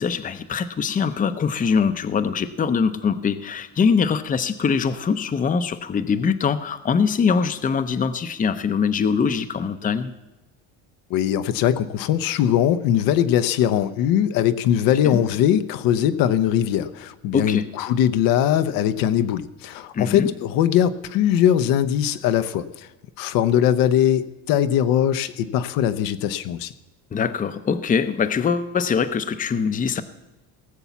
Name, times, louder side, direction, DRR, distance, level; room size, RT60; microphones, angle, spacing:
voice 1, 0.0-10.1 15.0-15.2 17.3-17.7 19.9-20.3 27.1-30.0, left 6 dB, 25° left, 11 dB, 0.7 m, -23 dB
voice 2, 11.1-22.9 23.2-26.7, left 10 dB, 70° left, 11 dB, 0.8 m, -21 dB
18.0 x 7.1 x 7.0 m, 1.0 s
cardioid pair, 110°, 36 cm